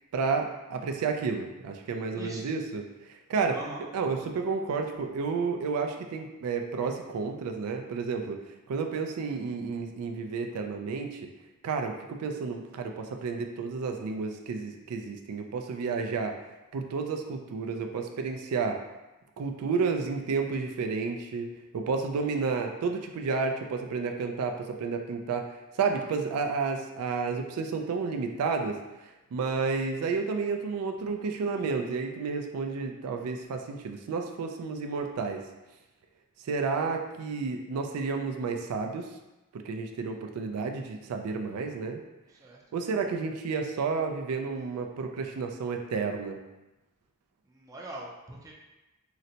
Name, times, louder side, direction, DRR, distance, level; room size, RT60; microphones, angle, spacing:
voice 1, 0.1-2.8 3.1-3.6 3.9-8.4 8.7-11.3 11.6-16.4 16.7-18.8 19.4-28.8 29.3-35.4 36.4-39.1 39.5-42.0 42.7-46.4, right 4 dB, 85° right, 4 dB, 0.3 m, -31 dB
voice 2, 2.1-2.5 3.5-3.8 42.4-42.6 47.5-48.5, right 1 dB, 15° right, -3 dB, 0.4 m, -41 dB
3.9 x 2.1 x 2.7 m, 1.0 s
head